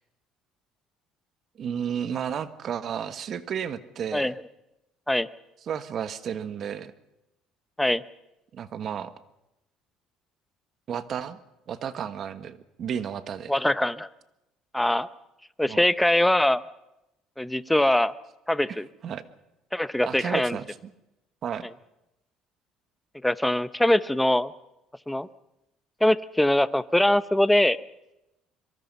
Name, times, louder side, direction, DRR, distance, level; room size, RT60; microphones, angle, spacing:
voice 1, 1.6-4.3 5.7-6.9 8.5-9.1 10.9-11.4 11.7-13.5 15.7-15.8 19.0-19.2 20.1-20.9 21.4-21.7, right 8 dB, 45° right, 12 dB, 1.4 m, -32 dB
voice 2, 13.5-14.1 14.7-15.1 15.6-16.6 17.4-18.1 18.5-18.9 19.7-20.6 23.2-24.5 25.1-25.3 26.0-27.8, left 1 dB, 5° left, 15 dB, 0.7 m, -22 dB
25.0 x 23.0 x 5.5 m, 0.91 s
cardioid pair, 125°, 0 cm